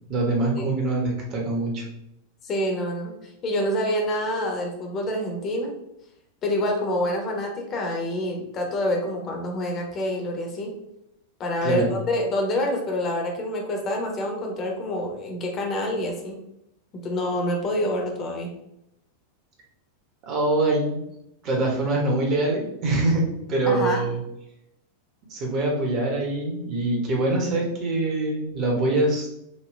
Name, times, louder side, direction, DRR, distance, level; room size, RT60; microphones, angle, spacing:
voice 1, 0.1-1.8 11.6-11.9 20.2-21.0 21.4-24.2 25.3-29.3, right 2 dB, 35° right, -1 dB, 1.4 m, -24 dB
voice 2, 2.4-3.1 3.4-5.7 6.4-10.7 11.4-16.4 17.0-18.5 23.7-24.1, left 1 dB, 30° left, 1 dB, 1.1 m, -27 dB
5.6 x 2.7 x 3.2 m, 0.83 s
figure-of-eight pair, 90°, 0 cm